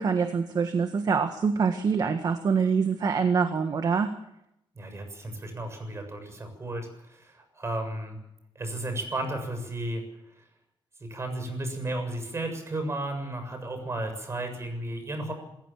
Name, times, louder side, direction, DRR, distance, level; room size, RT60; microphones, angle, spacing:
voice 1, 0.0-4.1, right 5 dB, 45° right, 7 dB, 1.7 m, -25 dB
voice 2, 4.8-6.9 7.3-8.2 8.6-10.0 11.0-15.3, right 1 dB, 30° right, 6 dB, 7.2 m, -33 dB
27.5 x 16.0 x 7.5 m, 0.82 s
cardioid pair, 110°, 9 cm